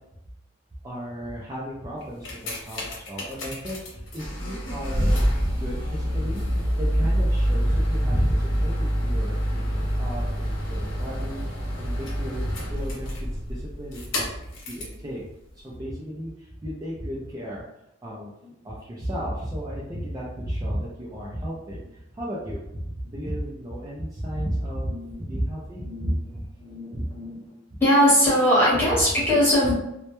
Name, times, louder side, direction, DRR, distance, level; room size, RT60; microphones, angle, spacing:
voice 1, 0.8-6.5 6.8-9.4 9.7-13.2 13.5-14.3 14.7-15.2 15.6-17.7 18.0-18.3 18.6-25.0 25.3-26.5 26.9-27.1 28.7-28.8, equal, 20° right, -6 dB, 0.4 m, -33 dB
sound 1, 2.0-15.0 15.7-15.8, equal, 85° left, 0.8 m, -26 dB
voice 2, 24.9-25.2 25.8-26.2 26.6-27.4 27.8-29.7, equal, 10° left, -8 dB, 1.0 m, -21 dB
2.1 x 2.1 x 2.9 m, 0.84 s
head